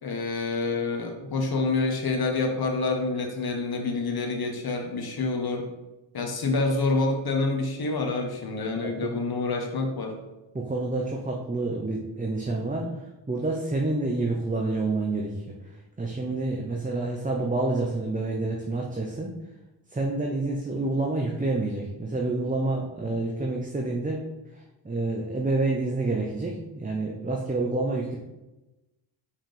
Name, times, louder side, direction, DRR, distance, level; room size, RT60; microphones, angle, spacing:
voice 1, 0.0-5.7 6.1-10.1 12.8-12.9, left 3 dB, 50° left, 3 dB, 1.4 m, -27 dB
voice 2, 8.8-9.1 10.5-12.8 13.3-15.5 16.0-19.3 19.9-24.2 24.5-28.2, right 2 dB, 15° right, 0 dB, 0.9 m, -28 dB
5.7 x 4.8 x 3.5 m, 1.0 s
cardioid pair, 65°, 47 cm